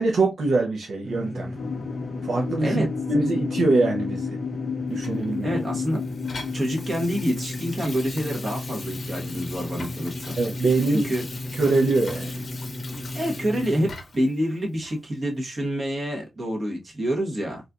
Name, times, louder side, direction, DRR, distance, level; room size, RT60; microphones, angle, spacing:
voice 1, 0.0-1.5 2.2-4.3 4.9-5.6 10.4-11.1 11.5-12.5, right 3 dB, 55° right, 0.6 m, -23 dB
sound 1, 1.0-13.9, left 1 dB, ahead, 0.5 m, -35 dB
sound 2, 1.6-11.0, left 7 dB, 70° left, 0.4 m, -34 dB
Water tap faucet / Sink (filling or washing), 5.0-14.3 14.8-15.0, left 3 dB, 35° left, 0.8 m, -41 dB
voice 2, 5.4-6.0 6.5-10.4 10.9-11.3 13.1-17.6, equal, 30° right, 1.1 m, -27 dB
4.2 x 2.5 x 2.3 m
wide cardioid pair, 175°, 0 cm